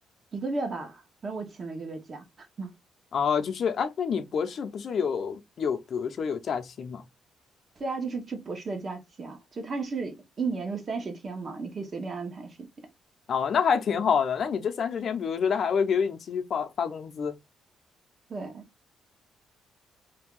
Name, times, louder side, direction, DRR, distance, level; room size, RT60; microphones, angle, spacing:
voice 1, 0.3-2.2 2.6-2.7 7.8-12.7 18.3-18.7, right 4 dB, 40° right, 1.0 m, -34 dB
voice 2, 3.1-7.0 13.3-17.4, left 6 dB, 55° left, 0.6 m, -27 dB
2.7 x 2.3 x 3.6 m
cardioid pair, 90°, 0 cm